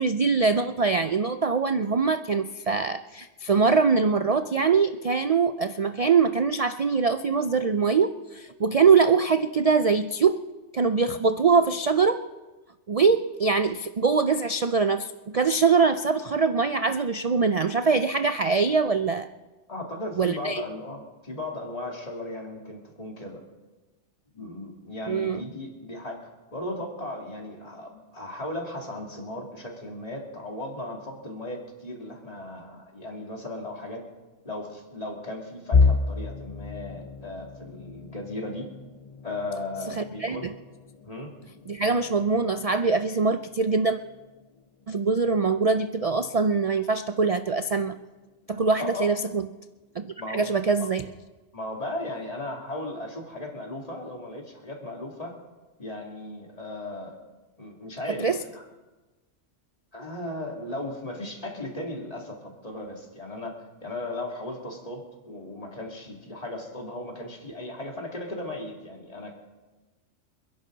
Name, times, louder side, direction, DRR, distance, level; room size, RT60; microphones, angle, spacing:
voice 1, 0.0-10.4 10.7-12.3 12.9-19.3 20.2-20.6 25.1-25.5 40.0-40.5 41.7-44.0 44.9-48.0 48.5-49.5 50.0-51.1 58.2-58.4, right 5 dB, 65° right, 10 dB, 0.3 m, -23 dB
voice 2, 19.7-23.4 24.3-34.0 34.4-38.7 39.2-40.5 41.0-41.3 48.8-49.1 50.2-50.5 51.5-55.4 55.8-57.2 57.6-58.6 59.9-69.3, left 1 dB, 30° left, 0 dB, 2.7 m, -36 dB
sound 1, 35.7-47.6 48.0-48.2 48.6-48.8 49.7-50.1, left 4 dB, 55° left, 0.3 m, -31 dB
28.0 x 10.5 x 3.9 m, 1.2 s
omnidirectional pair, 1.3 m